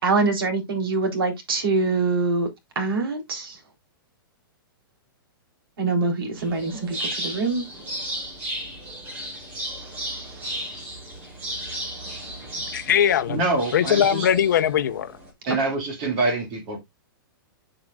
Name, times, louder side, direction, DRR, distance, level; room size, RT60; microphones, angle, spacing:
voice 1, 0.0-2.5 2.8-3.6 5.8-7.6 9.8-10.8, right 3 dB, 80° right, 3.7 m, -25 dB
sound 1, 6.4-15.3, right 1 dB, 15° right, 1.8 m, -34 dB
voice 2, 12.7-13.4 13.7-15.1, left 9 dB, 55° left, 0.9 m, -20 dB
voice 3, 13.3-14.3 15.5-16.8, right 2 dB, 30° right, 2.4 m, -25 dB
7.8 x 7.7 x 2.5 m
hypercardioid pair, 180°, 12 cm